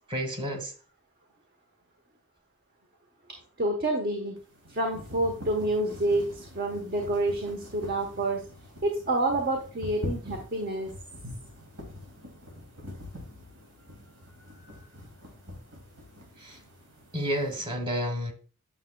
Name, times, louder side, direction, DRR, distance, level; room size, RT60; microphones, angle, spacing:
voice 1, 0.1-0.7 16.4-16.6 17.1-18.3, equal, 25° right, 1.3 m, -30 dB
voice 2, 3.6-4.4 4.6-8.4 8.8-10.9, right 2 dB, 40° right, 1.1 m, -28 dB
sound 1, 4.4-17.6, left 1 dB, 85° right, 2.5 m, -44 dB
9.4 x 6.4 x 2.2 m
head